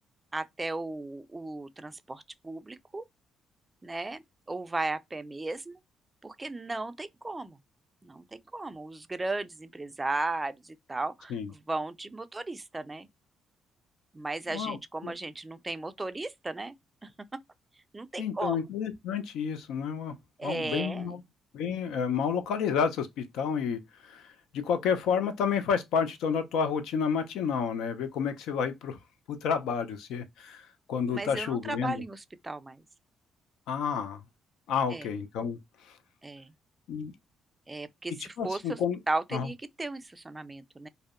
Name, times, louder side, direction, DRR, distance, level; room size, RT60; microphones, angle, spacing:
voice 1, 0.3-3.0 3.8-4.2 4.5-5.8 6.2-7.6 8.0-11.4 11.7-13.1 14.1-16.7 17.0-17.4 17.9-18.6 20.4-21.2 31.1-32.8 34.9-35.1 36.2-36.5 37.7-38.8 39.1-40.9, right 2 dB, 20° right, 0.3 m, -35 dB
voice 2, 18.2-20.1 20.4-21.2 21.5-24.2 24.5-29.0 29.3-32.0 33.7-34.2 34.7-35.6 36.9-37.1 38.4-39.0 39.3-39.5, left 6 dB, 85° left, 0.4 m, -30 dB
2.6 x 2.1 x 2.4 m
cardioid pair, 90°, 0 cm